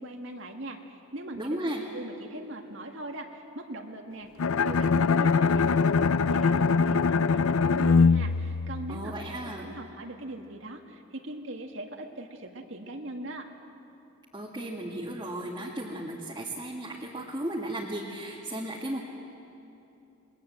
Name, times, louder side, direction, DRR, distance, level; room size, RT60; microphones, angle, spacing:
voice 1, 0.0-1.6 1.9-4.3 4.6-13.5, right 1 dB, 65° right, 3 dB, 1.9 m, -40 dB
voice 2, 1.4-1.8 8.9-9.7 14.3-19.0, right 1 dB, 20° right, -3 dB, 1.9 m, -35 dB
Bowed string instrument, 4.4-9.4, left 5 dB, 85° left, 0.5 m, -23 dB
28.0 x 21.5 x 7.8 m, 2.8 s
head